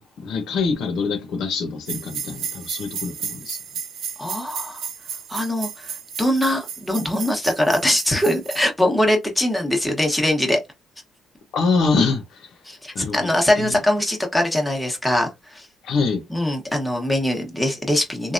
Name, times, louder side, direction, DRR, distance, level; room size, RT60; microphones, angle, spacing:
voice 1, 0.2-3.6 11.5-12.4 12.9-13.3 13.6-13.8 15.8-16.2, left 4 dB, 80° left, 0.8 m, -24 dB
sound 1, 1.9-8.6, right 7 dB, 80° right, 0.7 m, -33 dB
voice 2, 4.2-4.9 5.3-10.6 12.6-15.7 16.3-18.3, left 1 dB, 5° left, 1.0 m, -22 dB
3.3 x 2.3 x 2.5 m
cardioid pair, 90°, 0 cm